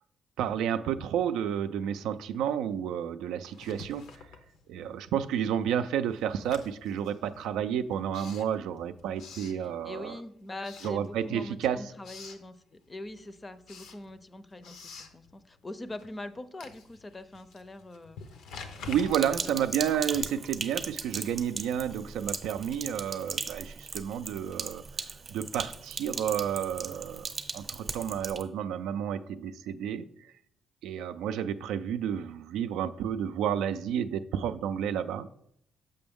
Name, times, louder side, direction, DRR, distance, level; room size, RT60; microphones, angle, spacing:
voice 1, 0.4-4.1 4.7-10.2 10.8-11.9 18.9-30.0 30.8-35.3, right 9 dB, 90° right, 11 dB, 0.3 m, -31 dB
Writing, 3.5-5.1 5.4-10.2 10.6-11.5 11.8-12.5 12.9-20.6, left 5 dB, 80° left, 0.7 m, -48 dB
voice 2, 9.6-14.8 15.1-18.2 19.2-20.0, left 2 dB, 25° left, 12 dB, 0.5 m, -43 dB
Sink (filling or washing), 19.1-28.4, right 4 dB, 40° right, 0.6 m, -38 dB
6.8 x 5.2 x 3.5 m, 0.74 s
cardioid pair, 90°, 0 cm